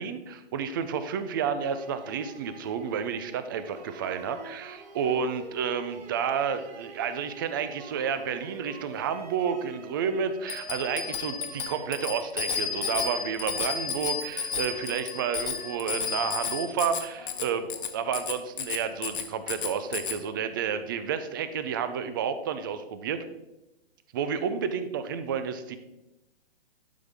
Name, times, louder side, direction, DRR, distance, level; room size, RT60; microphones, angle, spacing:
voice 1, 0.0-23.2 24.1-25.8, right 7 dB, 20° right, 11 dB, 0.4 m, -30 dB
sound 1, 1.6-16.7, right 4 dB, 40° right, 1.2 m, -48 dB
Bicycle bell, 10.5-20.2, left 7 dB, 55° left, 1.1 m, -33 dB
12.0 x 5.6 x 3.4 m, 0.95 s
hypercardioid pair, 145°, 32 cm